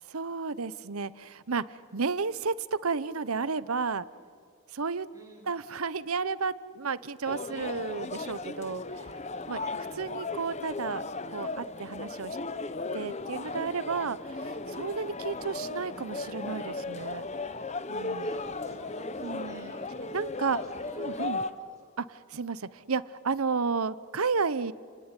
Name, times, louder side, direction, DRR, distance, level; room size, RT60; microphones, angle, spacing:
voice 1, 0.1-2.5 2.8-4.1 4.7-5.1 5.5-9.1 9.5-9.6 10.0-11.0 11.3-12.4 12.9-14.2 14.7-17.2 17.9-18.3 19.2-19.7 20.1-20.6 21.0-21.4 22.0-24.7, right 5 dB, 85° right, 17 dB, 0.9 m, -32 dB
voice 2, 5.1-5.5 9.6-9.8 18.2-19.9 20.5-21.8, right 1 dB, 15° right, 0 dB, 5.9 m, -51 dB
sound 1, 7.3-21.5, left 3 dB, 30° left, 0.9 m, -36 dB
30.0 x 19.5 x 9.9 m, 2.2 s
head